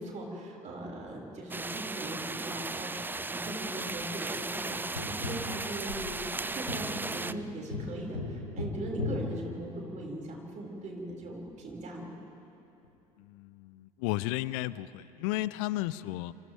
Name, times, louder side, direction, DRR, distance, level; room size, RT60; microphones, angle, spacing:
voice 1, 0.0-2.9 3.3-12.1, right 1 dB, 40° right, -1 dB, 5.6 m, -39 dB
sound 1, 1.5-7.3, right 3 dB, 10° right, 0.6 m, -36 dB
Tap, 5.0-10.2 12.8-12.9, left 3 dB, 90° left, 1.6 m, -39 dB
voice 2, 13.2-16.3, left 16 dB, 60° left, 18 dB, 0.6 m, -33 dB
28.0 x 26.5 x 3.5 m, 2.7 s
figure-of-eight pair, 55°, 19 cm